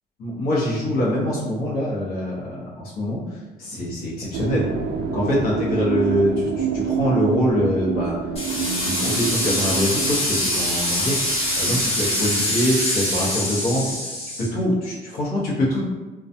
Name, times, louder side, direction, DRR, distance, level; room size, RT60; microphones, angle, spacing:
voice 1, 0.2-3.2 3.6-4.7 5.1-8.2 8.5-11.2 11.6-13.9 14.4-15.8, left 1 dB, 65° left, -5 dB, 0.9 m, -24 dB
sound 1, 4.3-11.9, right 7 dB, 80° right, 0.4 m, -28 dB
sound 2, 8.4-14.5, left 1 dB, 35° left, 1.2 m, -24 dB
2.2 x 2.2 x 2.7 m, 1.2 s
cardioid pair, 110°, 17 cm